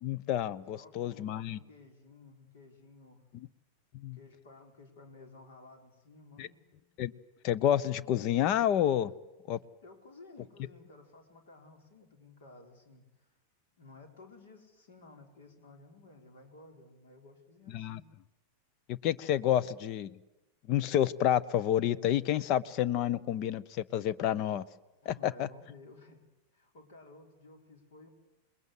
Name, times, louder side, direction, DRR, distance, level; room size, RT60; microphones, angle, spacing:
voice 1, 0.0-1.6 3.9-4.2 6.4-6.5 7.0-7.1 7.4-9.1 9.5-9.6 17.7-18.0 18.9-20.1 20.7-24.6 25.0-25.5, left 11 dB, 40° left, 18 dB, 0.8 m, -29 dB
voice 2, 0.7-3.2 4.1-6.9 9.8-13.3 13.8-18.1 19.4-19.7 25.0-26.3 26.5-28.1, left 2 dB, 60° left, 5 dB, 4.2 m, -55 dB
27.5 x 21.0 x 8.1 m, 1.0 s
figure-of-eight pair, 90°, 0 cm